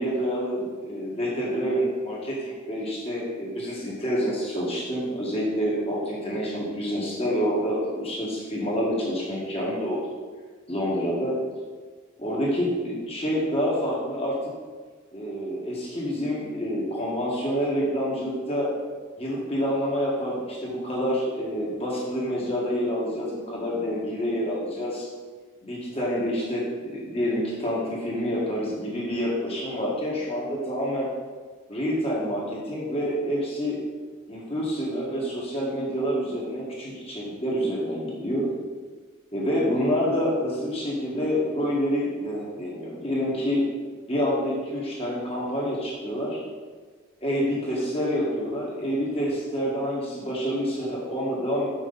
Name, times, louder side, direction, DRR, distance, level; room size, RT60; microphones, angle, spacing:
voice 1, 0.0-10.0 10.7-11.4 12.2-14.4 15.1-18.7 19.2-25.1 25.6-31.1 31.7-33.8 34.3-38.5 39.3-43.7 44.1-46.4 47.2-51.7, equal, 30° left, -5 dB, 1.8 m, -27 dB
6.4 x 6.1 x 4.1 m, 1.5 s
head